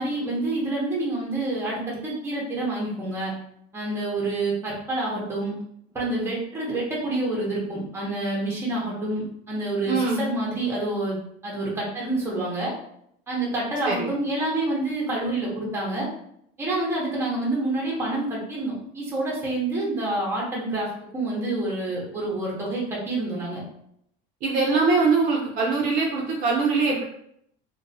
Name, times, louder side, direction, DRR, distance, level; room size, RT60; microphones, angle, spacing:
voice 1, 0.0-3.3 3.7-5.6 5.9-12.7 13.3-16.1 16.6-23.6, right 2 dB, 10° right, -4 dB, 0.7 m, -28 dB
voice 2, 9.9-10.2 13.8-14.1 24.4-27.0, right 4 dB, 45° right, -2 dB, 0.5 m, -22 dB
2.9 x 2.2 x 2.6 m, 0.72 s
cardioid pair, 165°, 20 cm